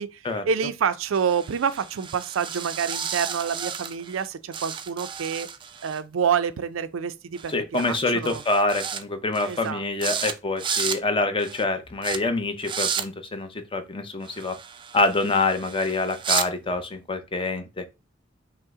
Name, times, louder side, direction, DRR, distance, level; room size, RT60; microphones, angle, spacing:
voice 1, 0.0-5.5 5.8-8.4 9.4-9.8, right 7 dB, 90° right, 0.4 m, -27 dB
sound 1, 1.1-4.3 4.5-6.0 7.4-7.5 7.8-8.0 8.3-9.0 9.3-9.7 10.0-10.3 10.6-11.0 11.4-11.6 12.0-12.2 12.6-13.1 14.2-16.5, right 7 dB, 25° right, 0.3 m, -32 dB
voice 2, 7.5-14.6 14.9-17.9, left 3 dB, 25° left, 0.6 m, -26 dB
5.4 x 2.0 x 3.6 m
head